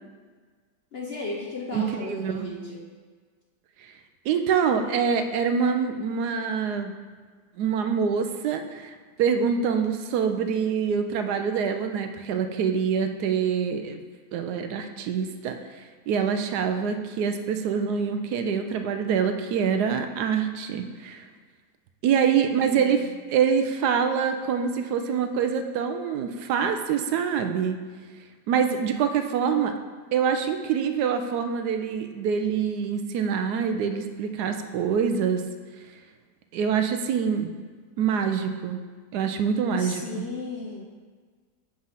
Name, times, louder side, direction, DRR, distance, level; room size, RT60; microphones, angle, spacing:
voice 1, 0.9-2.9 22.5-23.1 39.8-40.8, left 2 dB, 50° left, -2 dB, 0.8 m, -35 dB
voice 2, 1.7-2.5 3.8-3.9 4.2-6.9 7.6-14.0 14.3-21.2 22.0-27.8 28.5-29.7 30.1-35.4 36.5-37.5 38.0-38.8 39.1-40.2, right 7 dB, 80° right, 7 dB, 1.1 m, -25 dB
7.2 x 3.8 x 5.6 m, 1.5 s
omnidirectional pair, 1.8 m